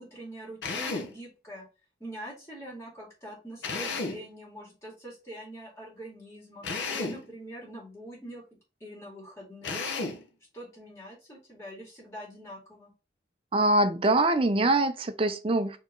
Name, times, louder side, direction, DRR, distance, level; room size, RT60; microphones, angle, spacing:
voice 1, 0.0-1.7 2.0-8.4 8.8-9.9 10.5-12.9, equal, 15° left, 2.2 m, -44 dB
Drill, 0.6-1.2 3.6-4.3 6.6-7.3 9.6-10.3, left 3 dB, 80° left, 0.9 m, -33 dB
voice 2, 13.5-15.8, right 2 dB, 30° right, 0.5 m, -24 dB
4.5 x 3.0 x 3.7 m
head